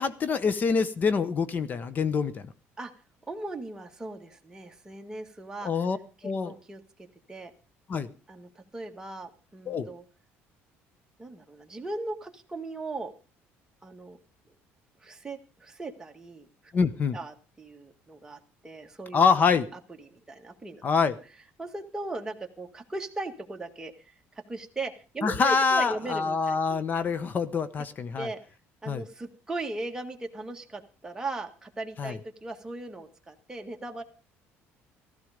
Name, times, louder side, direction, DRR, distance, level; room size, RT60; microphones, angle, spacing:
voice 1, 0.0-2.4 5.6-6.0 6.2-6.5 7.9-8.1 9.7-9.9 16.7-17.2 19.1-19.7 20.8-21.1 25.2-28.3 28.9-29.0 32.0-32.2, left 5 dB, 35° left, 15 dB, 1.1 m, -25 dB
voice 2, 3.3-5.7 6.2-6.8 7.3-7.5 8.3-10.0 11.2-13.1 13.8-14.2 15.0-16.7 17.1-19.2 19.7-20.8 21.6-26.8 28.2-28.4 28.8-34.0, right 2 dB, 10° right, 3 dB, 2.0 m, -38 dB
15.0 x 13.5 x 5.2 m, 0.35 s
cardioid pair, 130°, 5 cm